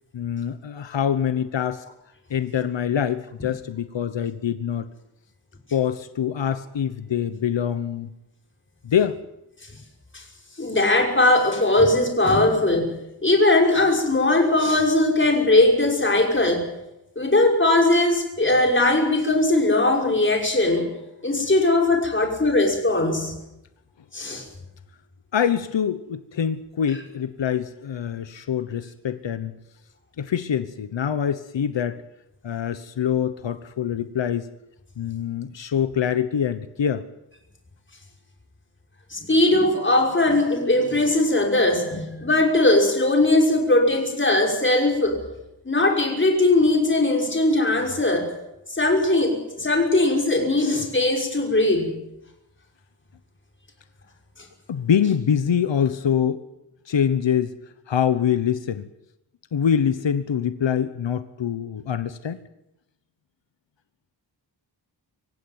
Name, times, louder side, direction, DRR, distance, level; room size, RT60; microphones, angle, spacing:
voice 1, 0.1-1.8 2.3-4.9 5.7-8.1 8.8-9.2 25.3-29.5 30.2-32.0 32.4-34.5 35.0-37.1 54.7-56.4 56.9-57.6 57.9-58.9 59.5-62.4, left 8 dB, 90° left, 12 dB, 1.1 m, -24 dB
voice 2, 10.6-12.9 13.2-16.6 17.2-20.9 21.2-23.3 24.1-24.4 39.1-45.2 45.6-48.3 48.7-52.0, left 2 dB, 25° left, 2 dB, 5.8 m, -20 dB
25.5 x 16.0 x 9.5 m, 0.90 s
wide cardioid pair, 130°, 43 cm